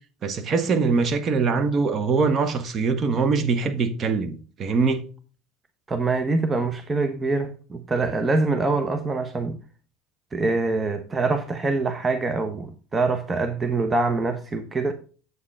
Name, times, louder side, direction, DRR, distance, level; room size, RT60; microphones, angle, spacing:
voice 1, 0.2-5.0, right 4 dB, 40° right, 1.4 m, -23 dB
voice 2, 5.9-9.6 10.3-14.9, right 3 dB, 25° right, 1.1 m, -24 dB
8.2 x 7.5 x 3.3 m
hypercardioid pair, 70°, 0 cm